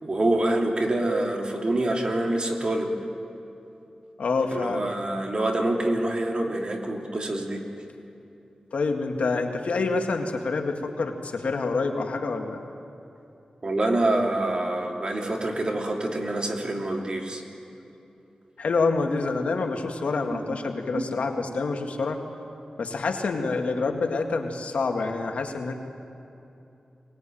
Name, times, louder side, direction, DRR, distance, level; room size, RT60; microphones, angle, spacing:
voice 1, 0.0-2.9 4.5-7.6 13.6-17.4 20.3-20.4 20.9-21.0, right 1 dB, 45° right, 1 dB, 2.9 m, -26 dB
voice 2, 4.2-4.9 8.7-12.6 18.6-22.2 22.8-25.7, left 3 dB, 85° left, 3 dB, 2.0 m, -27 dB
24.0 x 20.0 x 9.2 m, 2.8 s
wide cardioid pair, 90°, 2 cm